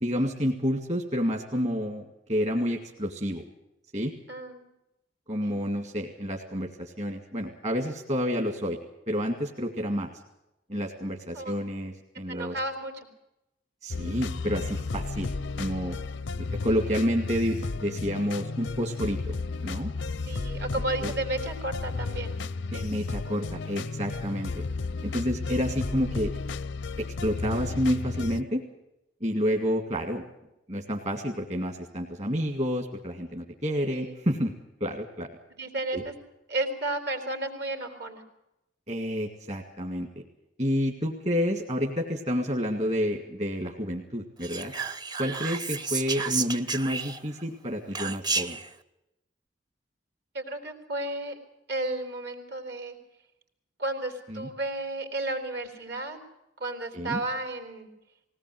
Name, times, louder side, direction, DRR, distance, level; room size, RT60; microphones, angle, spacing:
voice 1, 0.0-3.4 3.9-4.1 5.3-8.8 9.1-10.1 10.7-12.6 13.8-16.0 16.6-19.3 19.6-19.9 21.0-21.1 22.7-24.6 25.0-26.3 27.0-28.6 29.2-30.2 30.7-34.5 34.8-35.3 35.9-36.0 38.9-40.2 40.6-44.7 45.2-48.6 54.3-54.5 56.9-57.2, equal, 40° right, 2 dB, 2.0 m, -29 dB
voice 2, 4.3-4.7 5.4-5.6 11.3-11.6 12.3-13.1 20.3-22.3 33.9-34.2 35.6-36.1 36.5-38.2 50.3-51.4 51.7-53.0 53.8-56.2 56.6-57.9, right 2 dB, 65° right, 5 dB, 3.5 m, -33 dB
sound 1, 13.9-28.4, left 3 dB, 80° left, 0.6 m, -33 dB
Whispering, 44.4-47.4 47.9-48.7, right 4 dB, 20° right, 0.8 m, -31 dB
20.0 x 18.0 x 7.7 m, 0.90 s
head